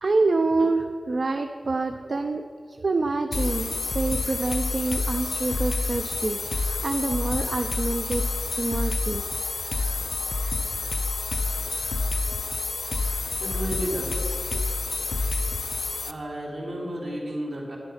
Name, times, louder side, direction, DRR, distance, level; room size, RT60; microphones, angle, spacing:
voice 1, 0.0-8.2 8.5-9.2, right 3 dB, 65° right, 6 dB, 0.4 m, -27 dB
sound 1, 3.3-16.1, left 3 dB, 75° left, 0.4 m, -28 dB
voice 2, 13.4-14.5 16.0-17.8, right 1 dB, 85° right, -4 dB, 2.7 m, -32 dB
9.7 x 8.9 x 5.6 m, 2.2 s
wide cardioid pair, 65°, 0 cm